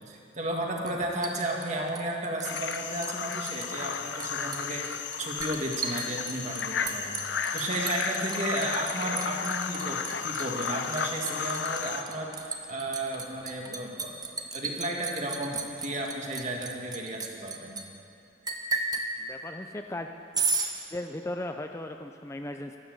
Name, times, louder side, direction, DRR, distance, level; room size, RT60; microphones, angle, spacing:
voice 1, 0.1-7.1 7.5-14.2 14.5-17.8, right 1 dB, 40° right, 0 dB, 2.0 m, -33 dB
Liquid, 0.9-2.8 3.0-3.7 3.9-17.8 18.5-19.1 20.3-20.7, right 4 dB, 20° right, 1.0 m, -34 dB
sound 1, 2.4-12.0, left 6 dB, 75° left, 0.8 m, -33 dB
voice 2, 19.2-20.1 20.9-22.8, left 1 dB, 15° left, 5 dB, 0.5 m, -37 dB
13.0 x 12.0 x 8.0 m, 2.5 s
head